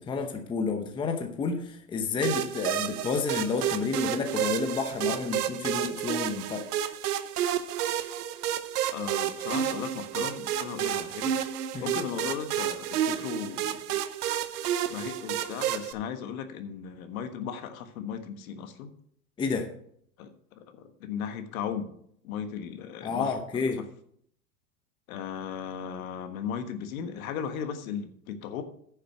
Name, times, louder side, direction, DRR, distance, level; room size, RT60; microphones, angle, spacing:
voice 1, 0.0-6.6 11.7-11.9 19.4-19.7 23.0-23.8, left 5 dB, 10° left, 5 dB, 0.8 m, -30 dB
sound 1, 2.2-15.9, right 10 dB, 80° right, 1.0 m, -30 dB
voice 2, 8.9-11.3 11.8-14.0 14.9-18.9 20.2-20.3 20.6-21.9 22.2-23.3 25.1-28.6, left 8 dB, 60° left, 9 dB, 1.5 m, -36 dB
10.0 x 6.6 x 5.9 m, 0.67 s
supercardioid pair, 140°, 46 cm